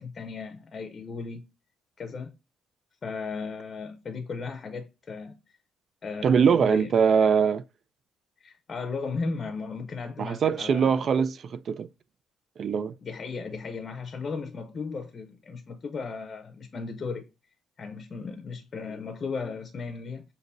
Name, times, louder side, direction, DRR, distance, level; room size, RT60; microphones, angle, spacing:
voice 1, 0.0-1.5 2.0-2.3 3.0-5.4 6.0-6.9 8.4-11.1 13.0-17.3 17.8-20.2, left 4 dB, 35° left, 0.6 m, -36 dB
voice 2, 6.2-7.6 10.2-11.9 12.6-12.9, right 6 dB, 45° right, 0.4 m, -22 dB
6.7 x 2.6 x 2.5 m
cardioid pair, 130°, 0 cm